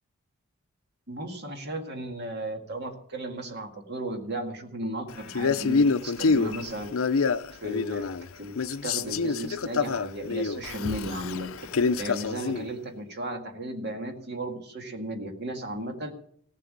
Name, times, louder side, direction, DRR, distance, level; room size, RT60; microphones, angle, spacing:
voice 1, 1.1-6.9 7.5-8.5 8.8-11.5 12.0-16.1, right 1 dB, 50° right, 4 dB, 1.8 m, -35 dB
Male speech man speaking, 5.3-8.3 8.5-12.7, left 4 dB, 70° left, 0.6 m, -26 dB
17.0 x 7.5 x 8.6 m, 0.66 s
head